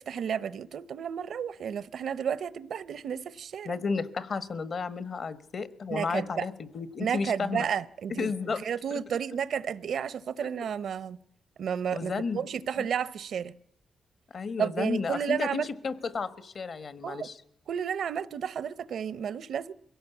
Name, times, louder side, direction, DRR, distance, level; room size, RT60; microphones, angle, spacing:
voice 1, 0.1-3.8 5.9-6.5 7.0-11.2 11.6-13.5 14.6-15.7 17.0-17.3 17.7-19.7, right 8 dB, 70° right, 0.7 m, -32 dB
voice 2, 3.6-7.7 8.1-8.6 8.9-9.0 11.9-12.4 12.8-12.9 14.3-17.4, left 4 dB, 50° left, 1.3 m, -32 dB
22.5 x 16.5 x 8.3 m
cardioid pair, 105°, 0 cm